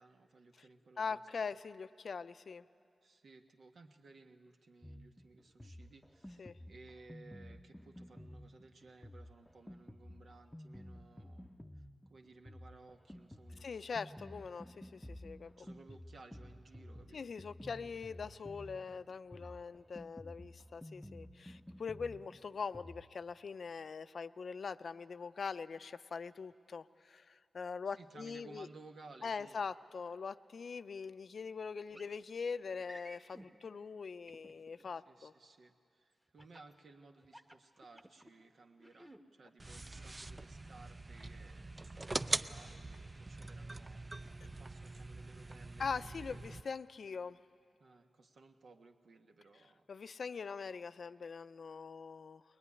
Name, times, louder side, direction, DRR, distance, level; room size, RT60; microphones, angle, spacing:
voice 1, 0.0-1.2 3.0-14.1 15.6-17.4 27.8-29.6 34.9-44.1 44.4-46.4 47.8-49.9, right 3 dB, 70° right, 4 dB, 1.4 m, -59 dB
voice 2, 1.0-2.6 6.4-6.6 13.6-15.7 17.1-28.7 29.2-35.3 45.8-47.4 49.9-52.4, left 5 dB, 65° left, 13 dB, 0.5 m, -42 dB
Drum kit, 4.8-23.0, equal, 10° left, 0.7 m, -53 dB
sound 1, 31.9-32.1 32.8-33.5 34.3-34.9 36.4-36.7 37.2-38.3 38.8-39.2, equal, 5° right, 1.3 m, -55 dB
sound 2, 39.6-46.6, right 2 dB, 30° right, 0.6 m, -43 dB
22.0 x 20.5 x 9.8 m, 2.4 s
cardioid pair, 60°, 0 cm